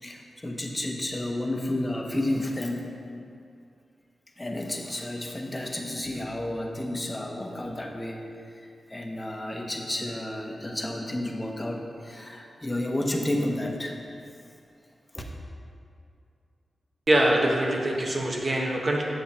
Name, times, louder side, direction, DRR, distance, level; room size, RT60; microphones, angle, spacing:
voice 1, 0.0-2.9 4.4-8.3 8.5-14.0 15.1-15.2, left 1 dB, 20° left, 1 dB, 1.1 m, -31 dB
voice 2, 17.1-19.0, right 1 dB, 45° right, -1 dB, 1.3 m, -23 dB
7.8 x 6.7 x 4.3 m, 2.4 s
cardioid pair, 60°, 0 cm